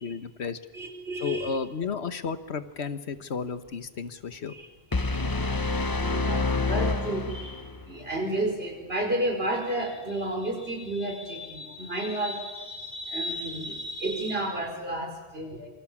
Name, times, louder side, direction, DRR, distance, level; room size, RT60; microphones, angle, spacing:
voice 1, 0.0-0.6 1.2-4.5, left 5 dB, 80° left, 11 dB, 1.5 m, -33 dB
voice 2, 0.7-1.6 4.5-4.7 4.9-5.6 6.0-15.7, right 1 dB, 65° right, 3 dB, 4.9 m, -32 dB
sound 1, 4.9-7.9, left 3 dB, 20° left, 0.7 m, -27 dB
26.5 x 24.5 x 7.3 m, 1.3 s
omnidirectional pair, 1.1 m